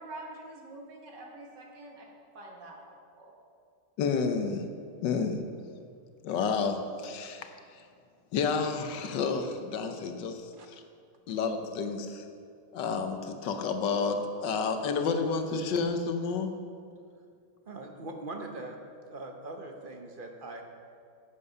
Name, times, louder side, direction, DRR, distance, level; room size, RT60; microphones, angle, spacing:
voice 1, 0.0-2.1 2.3-3.3, right 2 dB, 75° right, 0 dB, 2.2 m, -46 dB
voice 2, 4.0-4.7 5.0-5.4 6.2-7.8 8.3-10.8 11.3-12.2 12.7-16.5, left 5 dB, 85° left, 7 dB, 1.5 m, -30 dB
voice 3, 17.7-18.8 19.1-20.6, right 2 dB, 40° right, 3 dB, 0.9 m, -41 dB
10.5 x 8.4 x 5.5 m, 2.3 s
omnidirectional pair, 1.9 m